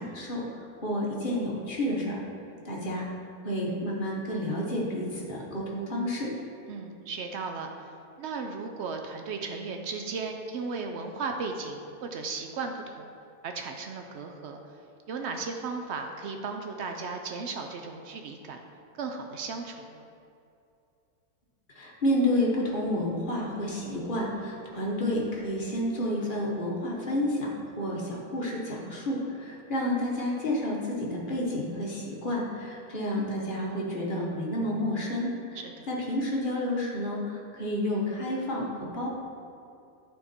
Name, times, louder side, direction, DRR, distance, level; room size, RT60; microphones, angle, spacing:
voice 1, 0.0-2.2 2.6-3.1 3.4-6.3 21.8-35.6 35.9-39.1, left 1 dB, 35° left, -3 dB, 1.1 m, -30 dB
voice 2, 6.7-7.9 8.2-13.1 13.4-14.6 15.1-18.6 19.0-20.1 35.6-35.9, right 4 dB, 70° right, 4 dB, 0.6 m, -36 dB
9.4 x 3.7 x 4.2 m, 2.6 s
omnidirectional pair, 1.6 m